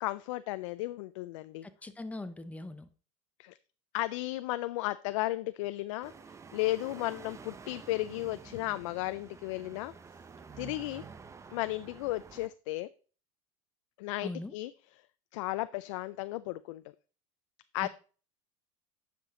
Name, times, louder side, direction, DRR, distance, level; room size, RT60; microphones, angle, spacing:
voice 1, 0.0-1.7 3.4-3.6 3.9-9.9 10.6-11.0 11.5-12.9 14.0-14.7 15.3-16.8 17.7-17.9, left 18 dB, 75° left, 14 dB, 0.4 m, -34 dB
voice 2, 1.6-2.9 14.2-14.5 17.8-17.9, left 2 dB, 10° left, 10 dB, 0.8 m, -41 dB
sound 1, 6.0-12.5, right 5 dB, 20° right, 0.7 m, -50 dB
9.8 x 6.0 x 3.7 m, 0.39 s
supercardioid pair, 115°, 16 cm